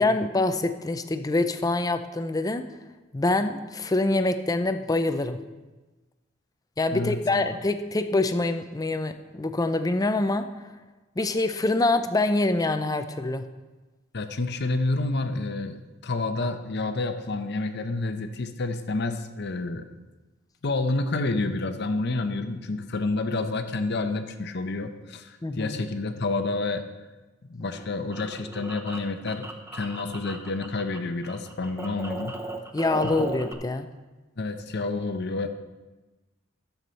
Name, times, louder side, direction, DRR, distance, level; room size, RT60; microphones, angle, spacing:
voice 1, 0.0-2.6 3.1-5.4 6.8-10.7 11.2-13.5 25.4-25.8 32.7-33.9, left 2 dB, 20° left, 9 dB, 0.5 m, -25 dB
voice 2, 6.9-7.5 14.1-19.9 20.6-26.8 27.5-29.5 29.7-32.3 33.0-33.2 34.4-35.5, left 3 dB, 60° left, 8 dB, 0.7 m, -29 dB
sound 1, 27.6-31.0 31.2-33.5, right 2 dB, 15° right, 0.8 m, -37 dB
12.5 x 7.2 x 4.1 m, 1.2 s
head